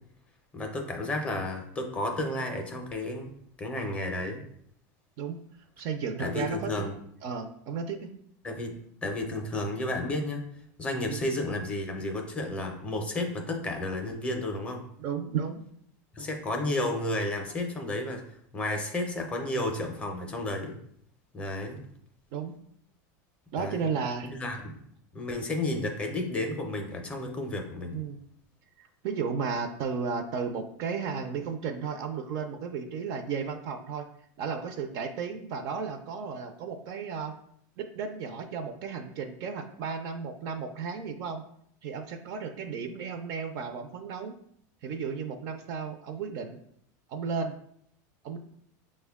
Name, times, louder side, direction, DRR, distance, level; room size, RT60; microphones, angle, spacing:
voice 1, 0.5-3.3 3.6-4.4 6.2-7.0 8.4-8.7 9.0-10.4 10.8-14.9 16.1-18.2 18.5-20.8 21.3-21.8 23.6-23.9 24.2-24.8 25.1-28.0, left 1 dB, 15° left, 3 dB, 0.5 m, -32 dB
voice 2, 5.8-6.9 7.2-8.1 11.1-11.2 15.0-15.6 22.3-22.5 23.5-24.3 27.9-28.2 28.8-34.0 34.4-37.3 37.8-41.4 41.8-44.4 44.8-46.6 47.1-47.6 48.2-48.4, right 6 dB, 40° right, 7 dB, 0.4 m, -34 dB
6.2 x 2.1 x 3.4 m, 0.69 s
supercardioid pair, 170°, 9 cm